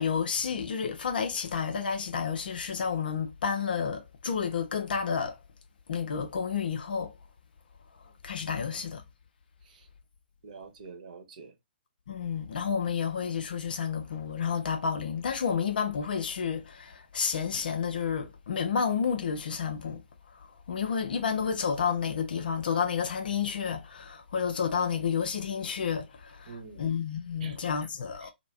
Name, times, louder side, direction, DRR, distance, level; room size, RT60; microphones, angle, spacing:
voice 1, 0.0-5.4 5.9-7.1 8.2-9.0 12.1-20.0 20.3-28.3, left 6 dB, 60° left, 0.6 m, -30 dB
voice 2, 10.4-11.5 26.5-26.8 27.4-27.6 28.2-28.3, right 5 dB, 50° right, 0.9 m, -46 dB
2.4 x 2.1 x 3.2 m
figure-of-eight pair, 125°, 6 cm